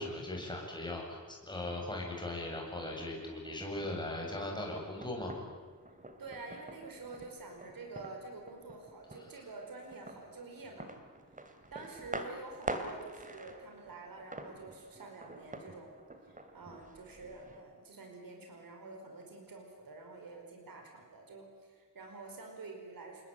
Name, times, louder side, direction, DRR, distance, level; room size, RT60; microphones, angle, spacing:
voice 1, 0.0-5.3, left 1 dB, 15° left, -1 dB, 7.9 m, -39 dB
sound 1, 2.7-17.6, right 2 dB, 25° right, 2.8 m, -47 dB
voice 2, 6.2-10.9 11.7-15.9 16.2-23.3, right 3 dB, 80° right, 3 dB, 5.0 m, -48 dB
28.5 x 21.0 x 9.3 m, 1.5 s
wide cardioid pair, 105°, 34 cm